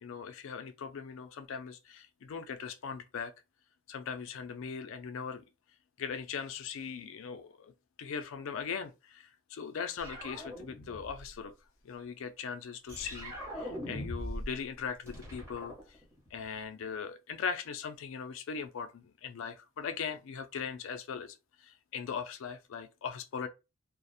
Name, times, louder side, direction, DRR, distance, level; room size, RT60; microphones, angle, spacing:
voice 1, 0.0-3.3 3.9-5.4 6.0-7.7 8.0-11.5 11.8-16.0 16.3-23.5, left 6 dB, 65° left, 0.3 m, -40 dB
sound 1, 10.0-11.3 12.9-14.6 14.8-16.4, equal, 15° right, 0.8 m, -41 dB
2.4 x 2.0 x 2.6 m
head